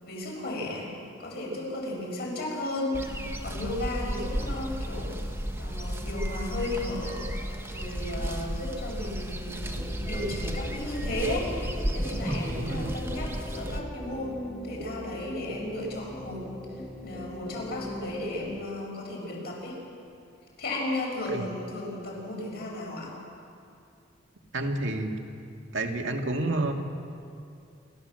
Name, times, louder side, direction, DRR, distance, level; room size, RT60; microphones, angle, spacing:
voice 1, 0.0-0.9 1.2-3.0 3.4-7.3 7.7-16.5 17.0-19.8 20.6-23.1, left 1 dB, 55° left, -2 dB, 6.5 m, -34 dB
sound 1, 2.9-13.8, equal, 15° right, 1.3 m, -33 dB
sound 2, 9.8-18.6, equal, 5° left, 2.0 m, -42 dB
voice 2, 12.3-12.9 21.3-21.4 24.5-25.1 25.7-26.7, right 2 dB, 85° right, 3 dB, 2.0 m, -30 dB
27.0 x 13.5 x 7.7 m, 2.5 s
head